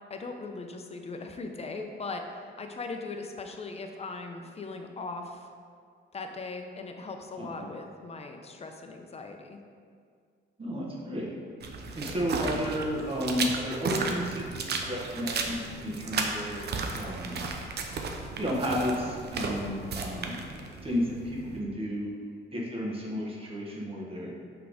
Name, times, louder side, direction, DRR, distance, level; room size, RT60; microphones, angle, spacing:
voice 1, 0.1-2.2 2.6-5.5 6.1-9.6, left 3 dB, 30° left, 4 dB, 0.7 m, -39 dB
voice 2, 10.6-11.3 11.9-17.4 18.4-20.3 20.8-22.1 22.5-24.3, equal, 30° right, -4 dB, 1.4 m, -32 dB
sound 1, 11.6-21.6, right 4 dB, 55° right, 0.7 m, -34 dB
5.8 x 3.5 x 5.0 m, 2.1 s
cardioid pair, 90°, 20 cm